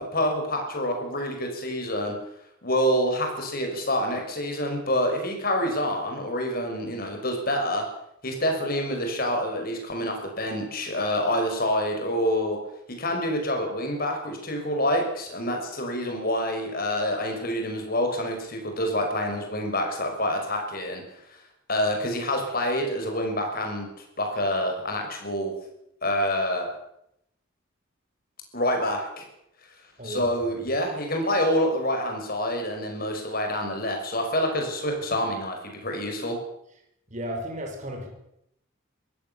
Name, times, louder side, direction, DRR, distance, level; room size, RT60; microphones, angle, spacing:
voice 1, 0.0-2.1 2.6-7.8 8.2-12.6 13.0-21.0 21.7-23.9 24.2-25.5 26.0-26.7 28.5-29.3 30.0-36.4, equal, 45° left, 3 dB, 6.1 m, -27 dB
voice 2, 30.0-30.3 37.1-38.1, right 1 dB, 35° right, 2 dB, 5.0 m, -34 dB
23.0 x 16.0 x 7.2 m, 0.78 s
head